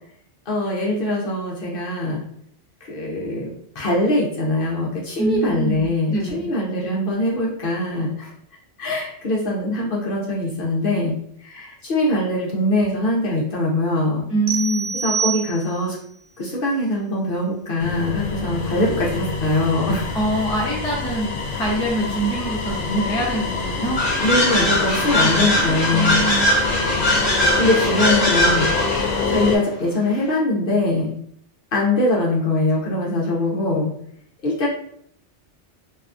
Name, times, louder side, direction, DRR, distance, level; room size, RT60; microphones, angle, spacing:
voice 1, 0.5-2.2 2.8-8.3 8.8-11.1 11.4-14.2 15.0-16.0 16.4-20.0 24.2-26.2 27.1-31.1 31.7-33.9 34.4-34.7, left 1 dB, 60° left, -4 dB, 0.7 m, -22 dB
voice 2, 5.2-6.5 14.3-14.9 20.1-24.3 24.6-25.3 25.6-26.5, right 1 dB, 5° left, -5 dB, 0.4 m, -25 dB
sound 1, 14.5-16.0, right 6 dB, 80° right, 1.0 m, -26 dB
sound 2, 17.8-29.6, left 4 dB, 80° left, 0.9 m, -26 dB
sound 3, 24.0-29.1, left 1 dB, 35° left, 1.1 m, -21 dB
2.6 x 2.2 x 2.4 m, 0.66 s
omnidirectional pair, 1.2 m